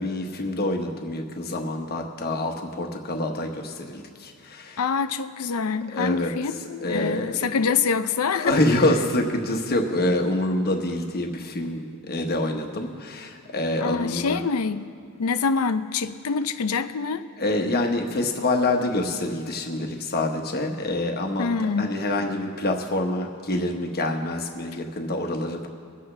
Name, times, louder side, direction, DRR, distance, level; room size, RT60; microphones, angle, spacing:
voice 1, 0.0-4.8 5.9-6.3 6.8-7.4 8.4-14.4 17.4-21.5 21.8-25.7, left 1 dB, 45° left, 3 dB, 1.2 m, -26 dB
voice 2, 4.8-8.5 13.8-14.9 15.2-17.2 21.4-21.9, left 5 dB, 80° left, 12 dB, 0.6 m, -25 dB
23.0 x 8.1 x 3.3 m, 2.5 s
head